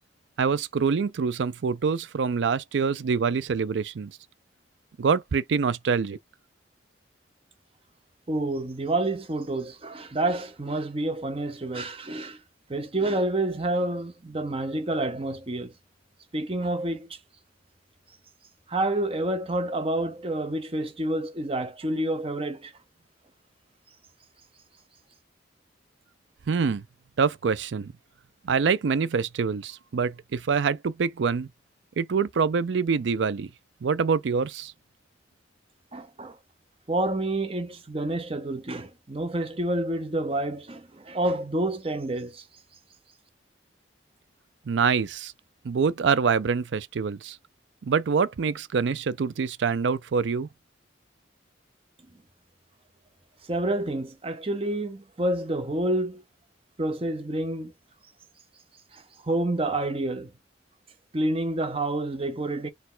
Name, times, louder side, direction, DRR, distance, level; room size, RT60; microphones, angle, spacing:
voice 1, 0.4-4.2 5.0-6.2 26.5-26.8 27.2-27.9 28.4-31.5 32.0-33.5 33.8-34.7 44.7-45.3 45.6-47.4 47.8-50.5, right 5 dB, 75° right, 0.4 m, -25 dB
voice 2, 8.3-12.4 12.7-15.7 16.3-17.2 18.7-22.7 35.9-36.4 36.9-42.4 53.5-56.2 56.8-57.7 58.9-60.3 61.1-62.7, right 1 dB, 30° right, 0.7 m, -28 dB
4.4 x 2.4 x 3.8 m
head